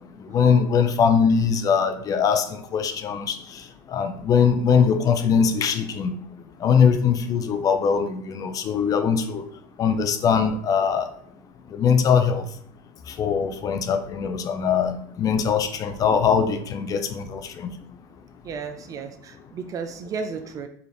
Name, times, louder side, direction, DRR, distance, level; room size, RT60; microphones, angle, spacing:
voice 1, 0.3-2.5 2.7-3.4 3.9-6.1 6.6-9.4 9.8-11.1 11.7-12.4 13.2-17.7, left 6 dB, 35° left, 8 dB, 0.5 m, -21 dB
voice 2, 18.4-20.7, right 5 dB, 35° right, 8 dB, 0.4 m, -33 dB
4.7 x 2.5 x 3.4 m, 0.64 s
supercardioid pair, 105°, 10 cm